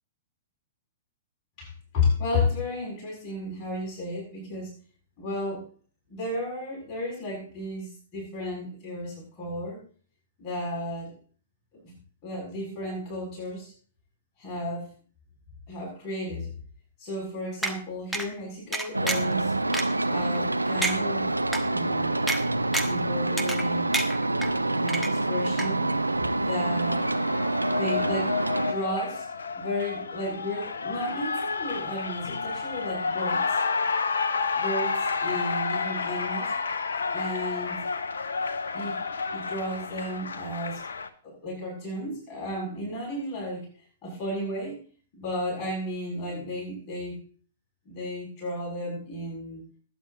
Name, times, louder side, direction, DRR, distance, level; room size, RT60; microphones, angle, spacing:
voice 1, 1.6-4.7 5.2-5.7 6.1-9.8 10.4-11.2 11.7-11.9 12.2-13.7 14.4-14.9 15.7-16.5 17.0-19.5 20.1-21.3 21.6-22.2 22.8-24.0 24.8-25.9 26.4-27.0 27.8-28.3 28.7-29.3 29.6-33.6 34.5-36.5 37.1-37.8 38.7-39.0 39.3-40.8 41.2-43.7 44.0-44.8 45.1-47.2 47.9-49.6, left 1 dB, 30° left, -3 dB, 7.2 m, -33 dB
sound 1, 17.6-17.8 18.1-18.3 18.7-19.3 19.7-19.8 20.4-20.5 20.8-21.0 21.5-21.6 22.3-22.4 22.7-23.0 23.4-23.7 23.9-24.5 24.9-25.3 25.6-25.7, right 2 dB, ahead, 1.3 m, -28 dB
sound 2, 18.9-28.7, right 2 dB, 85° right, 0.7 m, -27 dB
Cheering, 25.9-41.1, left 4 dB, 70° left, 0.9 m, -30 dB
21.0 x 9.3 x 2.9 m, 0.41 s
figure-of-eight pair, 110°, 0 cm